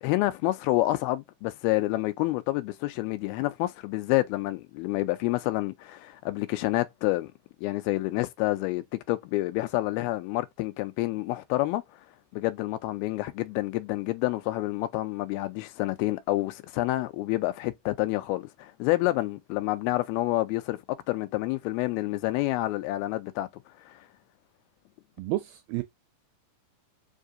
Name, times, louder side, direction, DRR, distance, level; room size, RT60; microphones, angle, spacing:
voice 1, 0.0-7.3 7.6-11.8 12.3-20.8 21.1-23.5 23.9-24.1, left 18 dB, 85° left, 2.4 m, -28 dB
voice 2, 25.2-25.8, right 18 dB, 85° right, 2.0 m, -30 dB
5.7 x 2.7 x 2.4 m
omnidirectional pair, 4.4 m